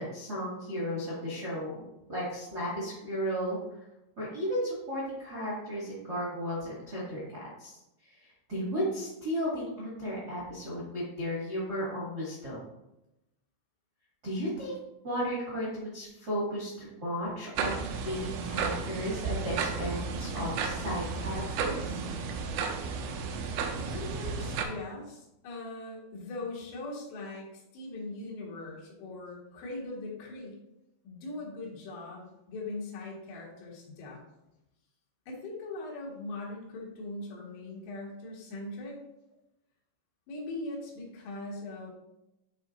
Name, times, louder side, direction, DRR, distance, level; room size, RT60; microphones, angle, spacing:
voice 1, 0.0-1.8 2.1-3.6 4.2-7.2 7.6-7.8 8.2-12.6 14.2-14.8 15.0-17.8 18.0-22.0, equal, 65° right, -8 dB, 0.9 m, -34 dB
sound 1, 17.6-24.7, right 5 dB, 85° right, 3.0 m, -33 dB
voice 2, 23.9-30.6 31.0-34.2 35.3-39.0 40.3-41.9, left 2 dB, 90° left, -3 dB, 4.1 m, -40 dB
11.0 x 3.8 x 2.6 m, 0.90 s
omnidirectional pair, 5.8 m